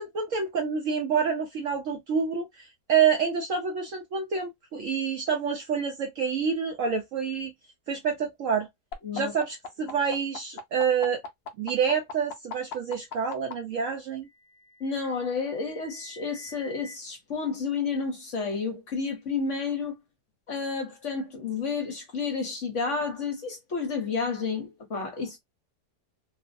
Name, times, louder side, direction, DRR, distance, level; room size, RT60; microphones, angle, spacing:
voice 1, 0.0-7.5 7.9-8.7 9.1-11.2 11.6-14.3, right 6 dB, 65° right, 0.8 m, -27 dB
sound 1, 8.9-13.5 14.7-16.9, left 5 dB, 70° left, 0.6 m, -40 dB
voice 2, 14.8-19.9 20.5-25.4, left 5 dB, 50° left, 1.0 m, -31 dB
3.1 x 2.0 x 2.5 m
omnidirectional pair, 1.8 m